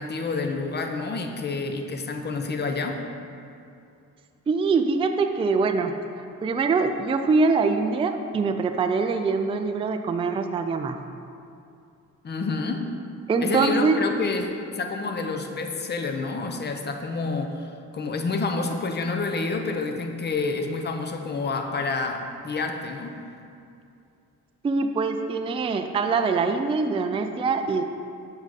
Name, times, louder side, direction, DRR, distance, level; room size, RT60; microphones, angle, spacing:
voice 1, 0.0-3.0 12.2-12.8 13.4-23.1, left 3 dB, 35° left, 5 dB, 0.7 m, -28 dB
voice 2, 4.5-11.0 13.3-14.0 24.6-27.8, right 4 dB, 20° right, 6 dB, 0.3 m, -24 dB
7.2 x 4.8 x 4.0 m, 2.6 s
cardioid pair, 90°, 30 cm